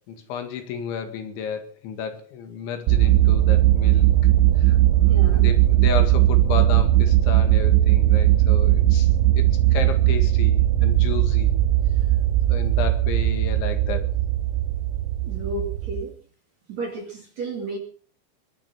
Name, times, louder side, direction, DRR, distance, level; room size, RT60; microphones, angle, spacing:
voice 1, 0.1-4.1 4.6-9.1 9.4-11.6 12.5-14.1, left 7 dB, 70° left, 7 dB, 4.2 m, -32 dB
sound 1, 2.9-16.0, right 13 dB, 80° right, 3.5 m, -18 dB
voice 2, 5.1-5.5 15.2-16.1 16.7-17.8, right 2 dB, 45° right, 4 dB, 2.4 m, -32 dB
20.5 x 10.5 x 6.1 m, 0.43 s
omnidirectional pair, 5.8 m